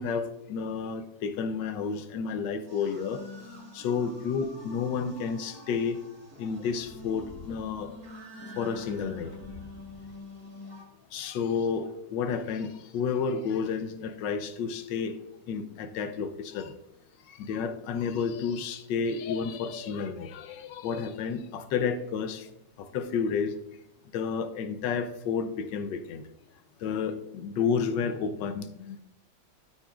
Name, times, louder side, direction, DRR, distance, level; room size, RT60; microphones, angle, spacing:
voice 1, 0.0-3.2 3.7-6.0 6.4-7.9 8.6-9.4 11.1-15.2 15.5-16.7 17.3-22.5 22.8-23.6 24.1-26.2 26.8-29.0, left 6 dB, 75° left, 10 dB, 1.4 m, -31 dB
sound 1, 2.7-10.8, left 2 dB, 50° right, 2.6 m, -45 dB
12.5 x 8.2 x 2.5 m, 0.80 s
omnidirectional pair, 2.1 m